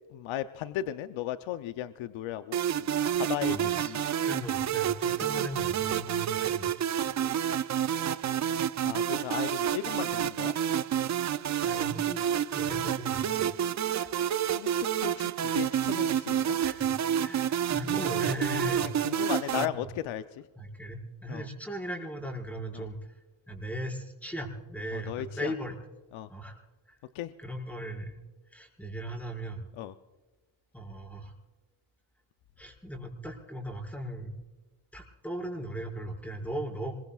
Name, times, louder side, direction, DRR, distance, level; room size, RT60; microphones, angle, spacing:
voice 1, 0.1-4.1 8.8-10.5 14.4-16.6 18.8-20.4 21.3-21.5 22.7-22.9 24.9-25.5 26.1-26.3 27.1-27.3 29.8-29.9, left 12 dB, 75° left, 10 dB, 0.7 m, -36 dB
sound 1, 2.5-19.7, right 10 dB, 40° right, 0.5 m, -29 dB
voice 2, 3.5-3.9 4.2-6.7 7.0-7.1 11.6-12.2 12.5-13.5 14.0-14.1 16.6-16.9 17.2-18.9 19.5-19.7 20.6-23.2 23.5-25.8 26.3-26.6 26.9-27.0 27.4-28.2 28.5-29.7 30.7-31.3 32.6-34.3 34.9-36.9, equal, 5° left, -1 dB, 5.4 m, -38 dB
26.0 x 22.5 x 2.4 m, 1.3 s
cardioid pair, 100°, 47 cm